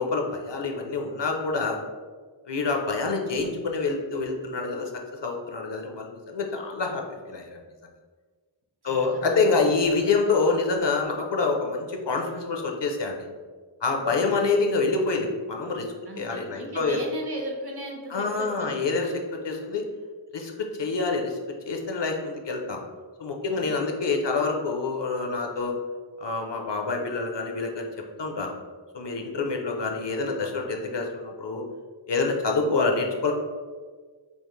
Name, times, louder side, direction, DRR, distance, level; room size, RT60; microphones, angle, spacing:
voice 1, 0.0-1.8 2.5-4.9 5.2-7.6 8.8-13.3 13.8-15.9 16.2-17.0 18.1-19.8 20.3-21.4 21.7-22.8 23.2-25.7 26.2-27.9 28.2-28.5 28.9-31.6 32.1-33.3, left 4 dB, 55° left, 2 dB, 0.7 m, -26 dB
voice 2, 8.9-9.7 14.0-14.3 16.1-19.0 23.5-23.8, right 1 dB, 50° right, 0 dB, 0.9 m, -37 dB
5.3 x 2.0 x 3.1 m, 1.5 s
wide cardioid pair, 40°, 50 cm